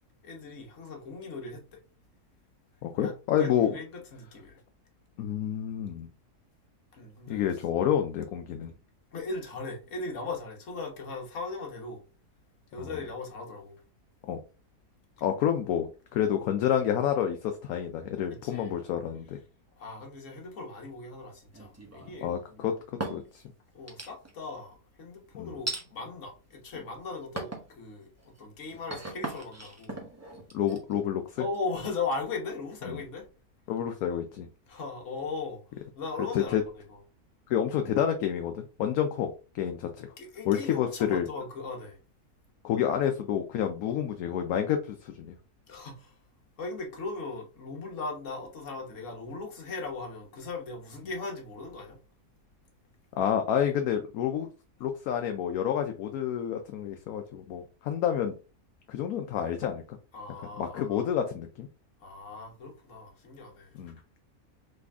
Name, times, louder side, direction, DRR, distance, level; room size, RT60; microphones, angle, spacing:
voice 1, 0.2-1.8 3.0-4.6 7.0-7.4 9.1-12.0 12.7-13.8 18.3-18.8 19.8-22.8 23.7-30.0 31.4-33.3 34.7-35.6 36.0-36.6 40.2-42.0 45.7-46.1 46.6-52.0 60.1-61.1 62.0-63.7, left 3 dB, 55° left, 1.5 m, -38 dB
voice 2, 2.8-3.7 5.2-6.1 7.3-8.7 12.8-12.9 14.3-14.4 15.2-19.4 22.2-22.7 23.1-23.4 25.4-25.6 30.5-31.4 32.9-33.0 33.7-34.5 36.2-36.6 37.5-40.1 40.5-41.3 42.6-45.4 53.1-54.5 54.8-58.3 58.9-60.0 60.6-61.7 63.7-64.0, left 9 dB, 75° left, 1.0 m, -29 dB
sound 1, 21.5-22.3 22.8-23.4 23.9-24.5 25.7-25.9 26.5-26.9 27.4-27.7 28.2-31.9, right 2 dB, 15° right, 0.7 m, -39 dB
3.9 x 3.3 x 3.4 m
omnidirectional pair, 1.6 m